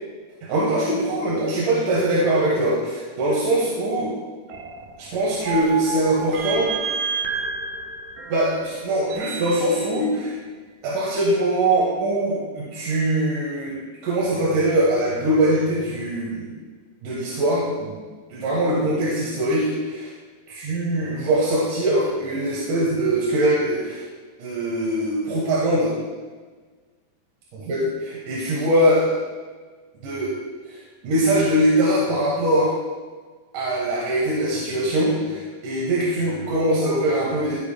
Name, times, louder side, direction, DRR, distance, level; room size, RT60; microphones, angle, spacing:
voice 1, 0.4-4.1 5.1-6.7 8.3-10.3 10.8-13.8 14.0-16.5 17.0-18.0 18.3-20.1 20.5-24.0 24.4-25.9 27.5-29.1 30.0-30.3 30.7-30.8 31.0-32.7 33.5-37.6, right 1 dB, 65° right, -5 dB, 2.6 m, -22 dB
sound 1, 4.5-10.1, right 5 dB, 85° right, 1.7 m, -30 dB
14.0 x 6.7 x 2.2 m, 1.4 s
omnidirectional pair, 4.4 m